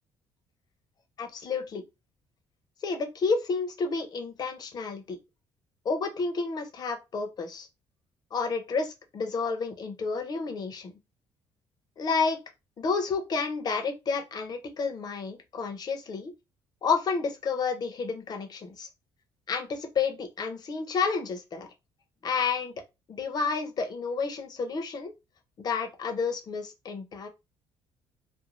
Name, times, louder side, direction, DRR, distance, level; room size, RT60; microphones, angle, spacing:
voice 1, 1.2-1.8 2.8-5.2 5.8-7.7 8.3-10.9 12.0-12.4 12.8-16.3 16.8-18.9 19.5-21.7 22.2-22.7 23.1-25.1 25.6-27.3, left 4 dB, 45° left, 0.7 m, -30 dB
2.6 x 2.2 x 3.0 m
cardioid pair, 100°, 10 cm